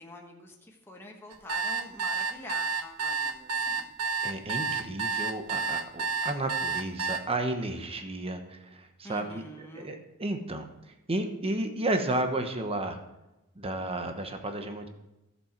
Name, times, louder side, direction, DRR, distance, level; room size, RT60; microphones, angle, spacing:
voice 1, 0.0-3.9 9.0-9.9, left 1 dB, 10° left, 0 dB, 1.3 m, -46 dB
sound 1, 1.3-7.2, right 4 dB, 80° right, 0.9 m, -30 dB
voice 2, 4.2-9.4 9.7-10.6 11.1-13.0 13.6-14.9, right 2 dB, 25° right, 6 dB, 1.0 m, -32 dB
13.5 x 7.4 x 4.5 m, 0.99 s
head